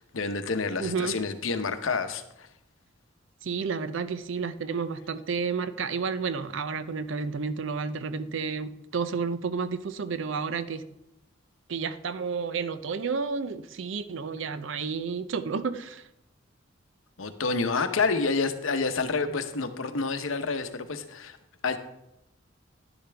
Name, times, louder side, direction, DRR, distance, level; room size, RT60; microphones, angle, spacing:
voice 1, 0.1-2.5 17.2-21.4 21.6-21.8, left 4 dB, 85° left, 9 dB, 0.9 m, -28 dB
voice 2, 0.8-1.2 3.4-10.8 11.7-16.0, right 5 dB, 70° right, 13 dB, 0.6 m, -31 dB
11.0 x 10.5 x 3.4 m, 0.87 s
head